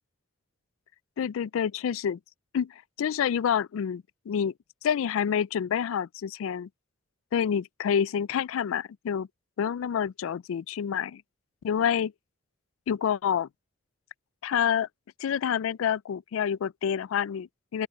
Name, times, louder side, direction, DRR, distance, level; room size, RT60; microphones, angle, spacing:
voice 1, 1.2-2.2 2.5-4.5 4.8-6.7 7.3-9.3 9.6-11.2 11.6-12.1 12.9-13.5 14.4-14.9 15.2-17.9, left 8 dB, 75° left, 0.3 m, -28 dB
open air
head